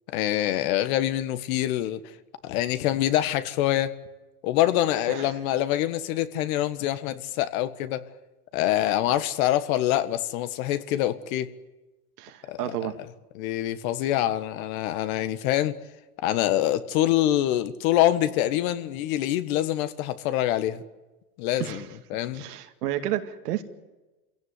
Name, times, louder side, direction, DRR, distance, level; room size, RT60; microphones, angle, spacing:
voice 1, 0.1-2.0 2.4-3.9 4.4-8.0 8.5-11.5 12.5-12.6 13.4-15.8 16.2-20.8 21.4-21.8 22.1-22.5, left 13 dB, 65° left, 12 dB, 1.7 m, -25 dB
voice 2, 5.1-5.4 12.2-13.0 21.6-21.9 22.3-23.6, right 12 dB, 80° right, 6 dB, 2.4 m, -31 dB
25.5 x 17.0 x 9.8 m, 1.1 s
hypercardioid pair, 115°, 46 cm